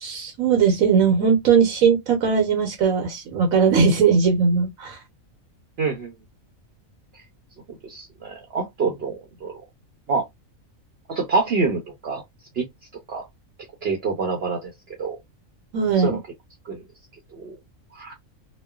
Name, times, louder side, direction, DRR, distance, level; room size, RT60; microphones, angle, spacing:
voice 1, 0.0-5.0 15.7-16.2, right 6 dB, 80° right, 1.2 m, -19 dB
voice 2, 5.8-6.1 7.8-9.6 10.1-10.3 11.1-12.2 12.6-12.7 13.1-13.3 13.8-14.7 15.0-15.2 16.0-16.2 16.7-16.8 17.3-17.5 17.9-18.1, right 4 dB, 55° right, 0.8 m, -26 dB
3.1 x 2.2 x 2.2 m
omnidirectional pair, 1.4 m